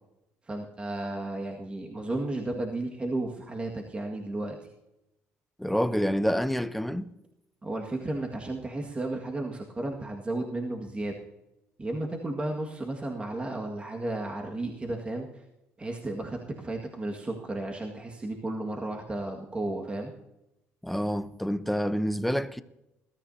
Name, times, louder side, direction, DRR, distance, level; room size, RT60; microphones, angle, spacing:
voice 1, 0.5-4.6 7.6-11.2 11.8-15.3 15.8-20.1, right 2 dB, 20° right, 1.8 m, -33 dB
voice 2, 5.6-7.1 20.8-22.6, equal, ahead, 0.7 m, -27 dB
21.0 x 13.0 x 2.8 m
cardioid pair, 105°, 5 cm